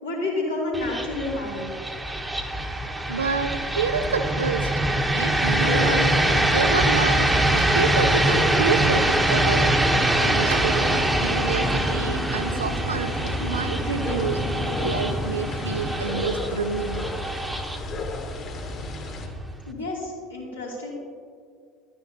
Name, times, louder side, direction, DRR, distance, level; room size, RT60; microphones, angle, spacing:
voice 1, 0.0-1.7 19.7-20.9, left 2 dB, 85° left, -6 dB, 2.9 m, -29 dB
sound 1, 0.7-19.7, right 1 dB, 10° right, 1.0 m, -24 dB
voice 2, 3.1-4.7 5.1-9.7 10.2-14.4 14.8-17.1, right 5 dB, 80° right, 10 dB, 0.5 m, -28 dB
sound 2, 5.4-19.3, left 3 dB, 40° left, 1.6 m, -34 dB
13.5 x 10.0 x 2.9 m, 2.1 s
figure-of-eight pair, 65°, 0 cm